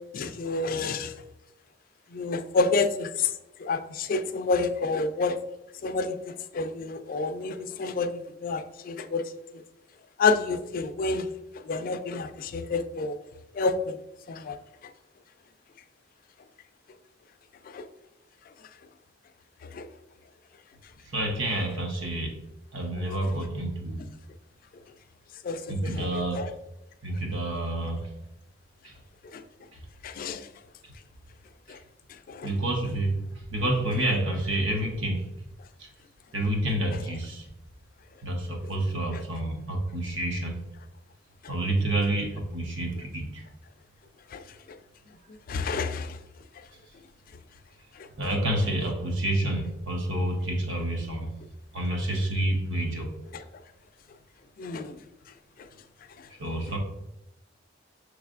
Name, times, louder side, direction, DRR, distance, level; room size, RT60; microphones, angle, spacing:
voice 1, 0.1-1.1 2.1-3.3 3.6-5.4 5.8-9.2 10.2-11.3 11.6-13.2 13.5-13.9 14.3-14.6 17.7-17.8 19.7-19.9 25.4-26.1 26.3-26.5 29.3-29.4 30.0-30.5 31.7-31.8 32.3-32.5 44.3-44.4 45.5-46.2 48.0-48.1 53.3-53.4 54.6-55.0, left 4 dB, 45° left, 9 dB, 0.3 m, -29 dB
voice 2, 21.0-22.4 22.7-24.0 25.7-26.5 27.0-28.1 28.8-28.9 29.7-29.8 31.7-31.8 32.4-35.3 35.8-35.9 36.3-37.5 38.2-40.5 41.5-43.4 48.2-51.3 51.7-53.1 56.4-56.8, right 1 dB, 80° right, 1 dB, 0.9 m, -29 dB
6.2 x 3.2 x 2.4 m, 0.91 s
head